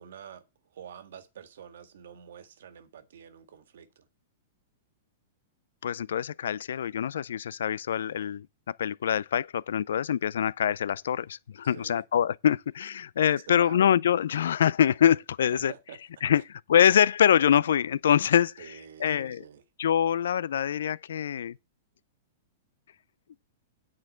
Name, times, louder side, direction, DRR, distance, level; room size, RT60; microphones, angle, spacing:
voice 1, 0.0-4.1 11.6-12.1 13.5-13.8 15.5-16.0 16.3-16.4 18.6-19.6, right 8 dB, 75° right, 1.8 m, -47 dB
voice 2, 5.8-15.7 16.2-16.4 16.7-18.5 19.0-19.4 19.8-21.6, left 9 dB, 80° left, 0.4 m, -24 dB
9.6 x 4.5 x 7.6 m
hypercardioid pair, 130°, 0 cm